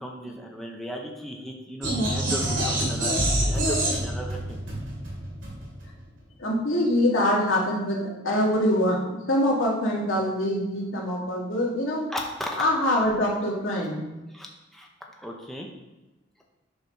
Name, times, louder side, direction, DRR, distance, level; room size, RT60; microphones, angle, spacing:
voice 1, 0.0-4.6 12.1-12.6 14.3-14.9 15.2-15.7, equal, ahead, 0 dB, 0.7 m, -36 dB
sound 1, 1.8-6.0, right 1 dB, 75° right, 2.7 m, -26 dB
voice 2, 6.4-12.1 12.6-14.0, left 1 dB, 85° left, -4 dB, 2.1 m, -24 dB
6.8 x 4.0 x 5.7 m, 1.0 s
head